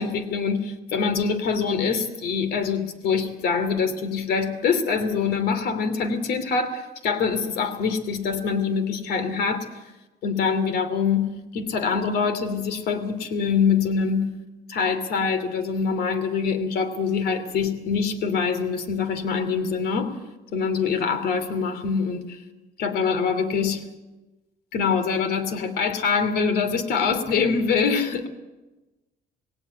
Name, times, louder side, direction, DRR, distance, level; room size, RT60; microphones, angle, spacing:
voice 1, 0.0-9.7 10.2-14.3 14.7-20.1 20.5-22.4 22.8-23.8 24.7-28.3, left 5 dB, 70° left, 9 dB, 2.8 m, -24 dB
19.0 x 18.0 x 8.2 m, 1.1 s
cardioid pair, 110°, 17 cm